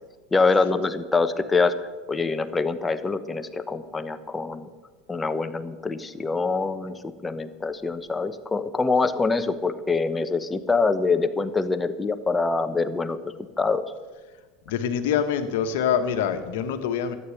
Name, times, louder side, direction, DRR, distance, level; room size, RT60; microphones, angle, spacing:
voice 1, 0.3-4.7 5.1-13.8, left 4 dB, 15° left, 11 dB, 1.1 m, -25 dB
voice 2, 14.7-17.1, left 8 dB, 70° left, 8 dB, 1.3 m, -25 dB
13.0 x 8.8 x 8.0 m, 1.3 s
hypercardioid pair, 80°, 0 cm